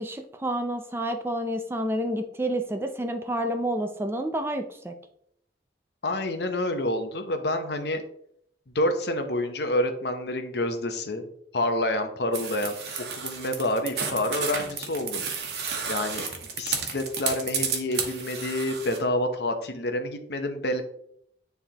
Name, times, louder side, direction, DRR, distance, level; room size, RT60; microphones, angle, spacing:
voice 1, 0.0-4.9, right 1 dB, 15° right, 6 dB, 0.4 m, -29 dB
voice 2, 6.0-8.0 8.7-11.2 11.5-15.2 15.9-20.8, left 1 dB, 70° left, 6 dB, 0.8 m, -28 dB
sound 1, 12.3-19.0, right 6 dB, 70° right, 1.1 m, -32 dB
9.5 x 3.4 x 2.9 m, 0.70 s
head